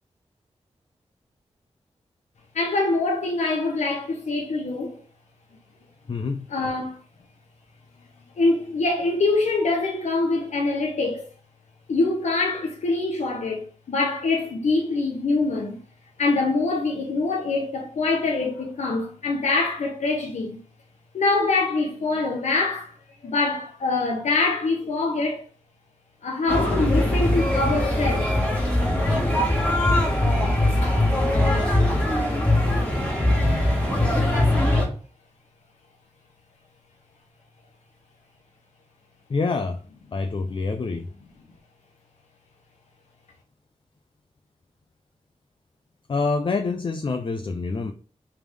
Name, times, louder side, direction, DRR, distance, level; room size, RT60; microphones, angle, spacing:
voice 1, 2.5-5.0 6.5-7.0 8.4-11.2 11.9-15.8 16.2-20.6 21.1-22.9 23.2-25.5 26.2-28.3 30.8-31.0, left 3 dB, 80° left, 0.8 m, -24 dB
voice 2, 6.1-6.5 39.3-39.8 40.1-41.1 46.1-47.9, left 4 dB, 45° left, 0.4 m, -26 dB
sound 1, 26.5-34.8, left 1 dB, 10° left, 1.6 m, -21 dB
3.5 x 3.3 x 3.3 m
cardioid pair, 55°, 12 cm